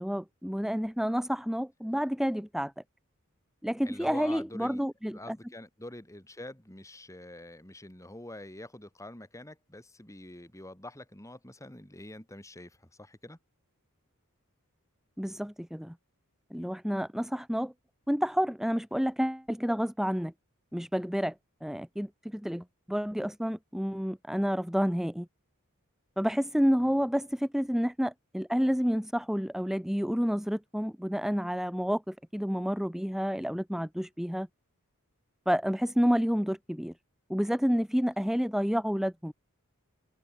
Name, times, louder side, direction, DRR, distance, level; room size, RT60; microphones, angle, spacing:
voice 1, 0.0-2.7 3.6-5.4 15.2-15.9 16.5-17.7 18.1-20.3 20.7-21.3 21.6-25.3 26.2-34.5 35.5-36.9 37.3-39.3, equal, ahead, 0.8 m, -29 dB
voice 2, 3.8-4.8 5.1-13.4 26.8-26.9, left 1 dB, 15° left, 3.1 m, -46 dB
head